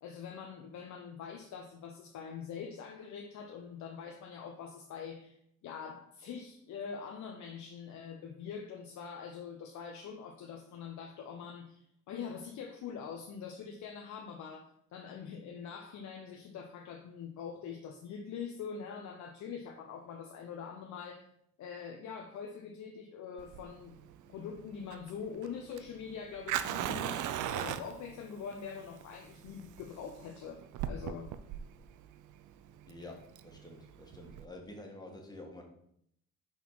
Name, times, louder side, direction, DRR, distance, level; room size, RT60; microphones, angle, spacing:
voice 1, 0.0-21.3 21.6-24.0 24.3-27.3 27.5-31.3, left 6 dB, 70° left, 2 dB, 0.8 m, -44 dB
Fire, 23.4-34.4, right 10 dB, 80° right, 0.5 m, -39 dB
voice 2, 32.9-33.2 33.4-35.6, left 2 dB, 15° left, 1 dB, 1.6 m, -48 dB
5.6 x 4.0 x 4.6 m, 0.72 s
cardioid pair, 90°, 30 cm